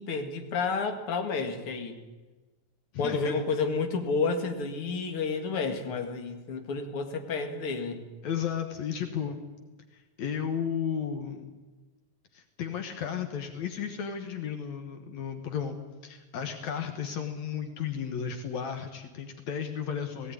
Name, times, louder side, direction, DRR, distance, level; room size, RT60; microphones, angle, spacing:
voice 1, 0.0-2.0 3.0-8.1, left 4 dB, 50° left, 5 dB, 2.7 m, -30 dB
voice 2, 2.9-3.6 8.2-9.4 9.9-11.5 12.3-15.8 16.0-20.3, left 7 dB, 75° left, 6 dB, 2.6 m, -34 dB
18.0 x 17.5 x 9.6 m, 1.2 s
omnidirectional pair, 3.3 m